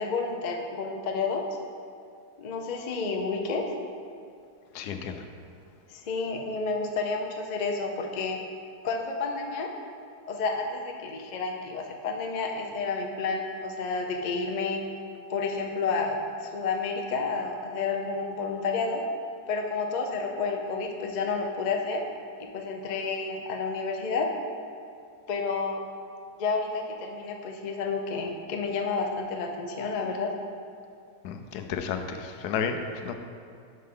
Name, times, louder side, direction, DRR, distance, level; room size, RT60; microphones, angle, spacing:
voice 1, 0.0-1.4 2.4-3.7 5.9-8.5 8.8-9.7 10.3-14.9 15.3-19.0 19.5-22.0 22.4-24.3 25.3-25.9 26.4-30.3, left 4 dB, 65° left, 2 dB, 0.4 m, -30 dB
voice 2, 4.7-5.2 31.2-33.1, left 6 dB, 85° left, 7 dB, 1.1 m, -32 dB
7.6 x 5.4 x 3.7 m, 2.3 s
omnidirectional pair, 1.7 m